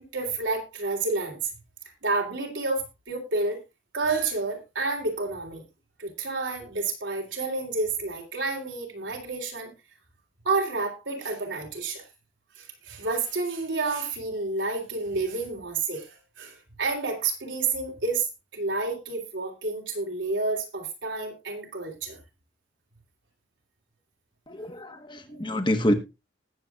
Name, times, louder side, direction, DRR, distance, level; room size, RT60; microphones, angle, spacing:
voice 1, 0.1-1.4 2.0-3.6 3.9-5.6 6.0-9.7 10.5-12.0 12.6-18.3 18.5-22.2, right 3 dB, 80° right, 2 dB, 3.5 m, -30 dB
voice 2, 24.5-25.9, equal, 25° left, 7 dB, 1.2 m, -26 dB
20.0 x 7.8 x 2.5 m, 0.24 s
head